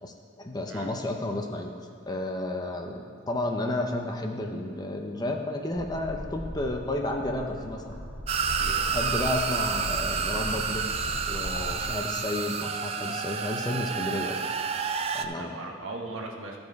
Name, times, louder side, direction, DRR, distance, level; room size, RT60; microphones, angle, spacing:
voice 1, 0.0-1.7 2.1-8.0 8.9-10.9 11.3-14.4 15.1-15.6, left 1 dB, 20° left, 3 dB, 0.5 m, -32 dB
sound 1, 5.7-11.9, equal, 75° left, 2.6 m, -37 dB
sound 2, 8.3-15.2, right 6 dB, 30° right, 0.3 m, -30 dB
voice 2, 8.6-8.9 11.8-12.0 15.3-16.6, right 2 dB, 70° right, 1 dB, 1.1 m, -39 dB
13.0 x 5.2 x 4.7 m, 2.2 s
head